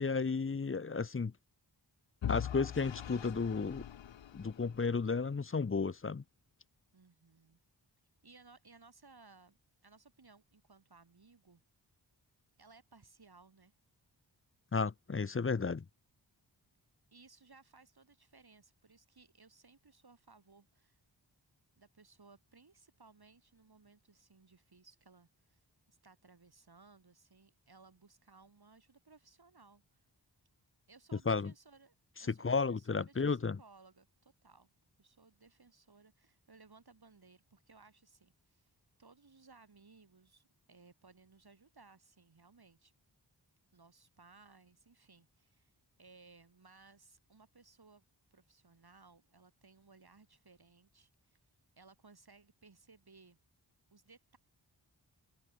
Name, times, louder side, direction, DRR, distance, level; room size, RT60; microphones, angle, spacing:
voice 1, 0.0-1.3 2.3-3.8 4.3-6.2 14.7-15.8 31.3-31.5 32.3-33.6, left 4 dB, 30° left, 0.6 m, -33 dB
Vehicle / Engine, 2.2-5.2, left 10 dB, 90° left, 0.7 m, -42 dB
voice 2, 6.9-7.6 8.2-9.6 9.8-11.6 12.6-13.7 17.1-21.0 21.8-30.1 30.9-34.7 35.0-38.7 39.0-42.9 43.7-48.0 48.3-51.4 51.8-53.4 53.9-54.4, right 4 dB, 60° right, 2.9 m, -62 dB
wide cardioid pair, 55°, 44 cm